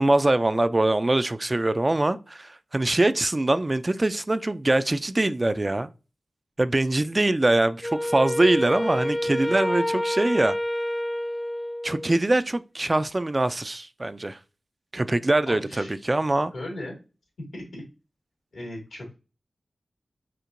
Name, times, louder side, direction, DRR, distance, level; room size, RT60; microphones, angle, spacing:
voice 1, 0.0-5.9 6.6-10.6 11.8-14.4 14.9-16.5, right 2 dB, 35° right, 0.3 m, -23 dB
Wind instrument woodwind instrument, 7.8-12.2, left 1 dB, 25° left, 0.6 m, -28 dB
voice 2, 15.5-15.9 16.5-17.0 17.5-17.8 18.5-19.1, left 1 dB, 90° left, 2.1 m, -37 dB
4.4 x 2.8 x 2.5 m
cardioid pair, 45°, 0 cm